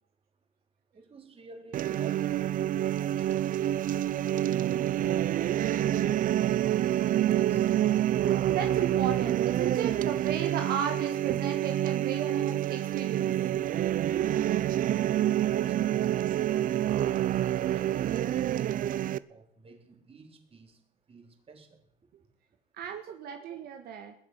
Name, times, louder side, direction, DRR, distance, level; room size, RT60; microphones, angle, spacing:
voice 1, 0.9-3.4 4.2-5.2 5.6-6.6 7.4-7.8 15.1-16.4 17.5-20.8 21.1-21.9, right 3 dB, 35° right, 3.7 m, -52 dB
sound 1, 1.7-19.2, right 12 dB, 55° right, 0.6 m, -27 dB
voice 2, 8.5-13.3 22.7-24.1, right 8 dB, 75° right, 1.7 m, -35 dB
20.5 x 7.3 x 9.5 m
cardioid pair, 90°, 16 cm